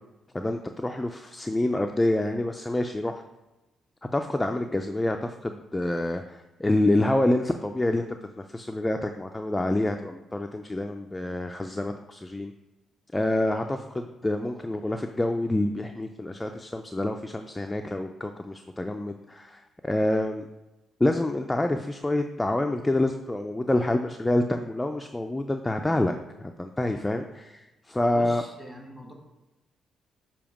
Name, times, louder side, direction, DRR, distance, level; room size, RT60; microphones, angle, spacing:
voice 1, 0.3-3.2 4.1-8.1 8.5-12.5 13.1-20.5 21.0-28.4, left 1 dB, 15° left, 5 dB, 0.4 m, -27 dB
voice 2, 28.1-29.1, equal, 5° right, 0 dB, 1.5 m, -43 dB
7.0 x 2.8 x 4.9 m, 1.0 s
cardioid pair, 90°, 0 cm